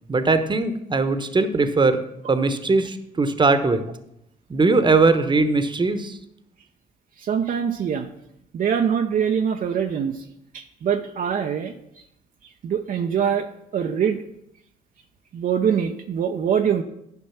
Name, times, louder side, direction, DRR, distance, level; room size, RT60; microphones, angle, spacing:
voice 1, 0.1-2.0 2.3-3.8 4.5-6.2, right 3 dB, 25° right, 10 dB, 1.1 m, -20 dB
voice 2, 7.2-8.1 8.5-10.3 10.5-11.7 12.6-13.5 13.7-14.2 15.3-16.8, right 8 dB, 55° right, 4 dB, 0.7 m, -23 dB
10.5 x 5.3 x 5.8 m, 0.79 s
supercardioid pair, 55°, 17 cm